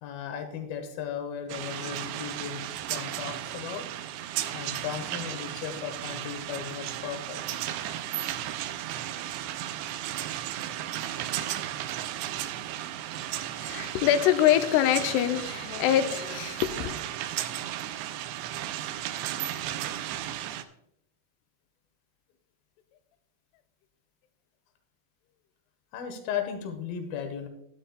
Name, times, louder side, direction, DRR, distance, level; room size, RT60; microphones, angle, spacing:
voice 1, 0.0-2.6 2.9-3.9 4.5-7.4 11.4-11.5 25.9-27.5, left 8 dB, 70° left, 3.0 m, -36 dB
sound 1, 1.5-20.6, right 12 dB, 85° right, 2.7 m, -35 dB
voice 2, 13.6-16.9, left 11 dB, 90° left, 2.7 m, -24 dB
12.5 x 11.5 x 2.3 m
omnidirectional pair, 4.7 m